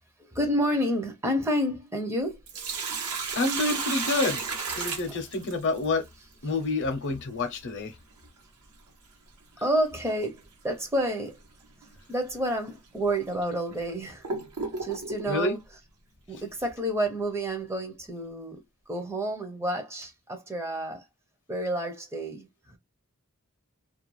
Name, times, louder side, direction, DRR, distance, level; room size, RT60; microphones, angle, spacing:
voice 1, 0.2-2.4 5.1-5.2 9.6-11.4 12.1-14.3 14.7-15.6 16.3-18.6 18.9-21.1 21.5-22.8, right 1 dB, 10° right, 0.5 m, -29 dB
Sink (filling or washing), 2.2-5.8 8.2-8.3 10.2-10.4 10.9-11.0 11.8-12.0 12.6-12.7 13.4-15.3, right 4 dB, 85° right, 1.0 m, -33 dB
voice 2, 3.4-4.4 4.7-6.1 6.4-7.9 15.3-15.6, left 3 dB, 55° left, 0.6 m, -28 dB
2.3 x 2.2 x 3.0 m
head